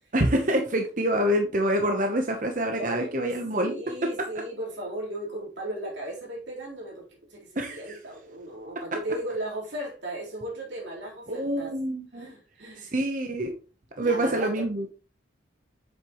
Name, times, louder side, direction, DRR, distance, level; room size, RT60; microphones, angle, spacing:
voice 1, 0.1-3.7 7.6-8.0 11.3-12.3 12.8-13.5 14.0-14.9, right 1 dB, 45° right, 0.9 m, -26 dB
voice 2, 2.8-3.1 3.5-11.7 12.1-12.9 14.0-14.6, right 1 dB, 85° right, 3.9 m, -36 dB
7.9 x 6.7 x 3.1 m
head